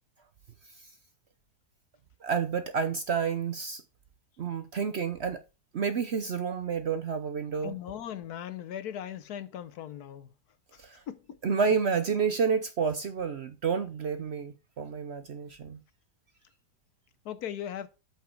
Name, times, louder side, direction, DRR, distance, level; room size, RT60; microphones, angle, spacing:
voice 1, 2.2-3.8 4.4-5.4 5.7-7.7 10.8-11.0 11.4-15.8, right 6 dB, 55° right, 0.8 m, -29 dB
voice 2, 7.6-10.3 10.7-10.8 11.1-11.4 17.2-17.9, left 10 dB, 75° left, 1.2 m, -38 dB
8.2 x 6.1 x 4.4 m
omnidirectional pair, 1.7 m